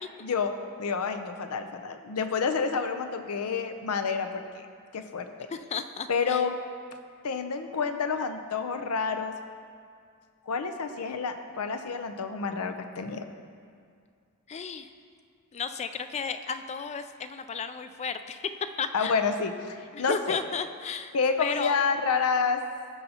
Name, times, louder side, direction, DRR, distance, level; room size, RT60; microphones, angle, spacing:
voice 1, 0.2-0.5 0.8-4.6 4.9-5.5 6.1-6.6 7.2-9.3 10.5-13.2 18.9-20.4 21.1-22.6, left 5 dB, 85° left, 7 dB, 0.6 m, -29 dB
voice 2, 5.5-6.4 14.5-14.9 15.5-18.5 18.8-19.1 19.9-21.8, left 5 dB, 30° left, 10 dB, 0.3 m, -34 dB
16.0 x 5.5 x 2.9 m, 2.2 s
head